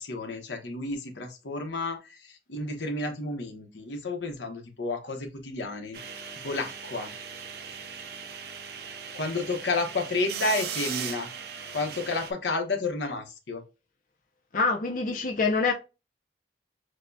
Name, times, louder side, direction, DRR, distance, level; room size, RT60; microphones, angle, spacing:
voice 1, 0.0-7.1 9.1-11.3 11.7-13.6, left 3 dB, 85° left, 0.9 m, -31 dB
sound 1, 5.9-12.3, right 7 dB, 60° right, 0.6 m, -38 dB
voice 2, 14.5-15.7, left 4 dB, 50° left, 0.5 m, -25 dB
6.5 x 2.2 x 2.6 m
head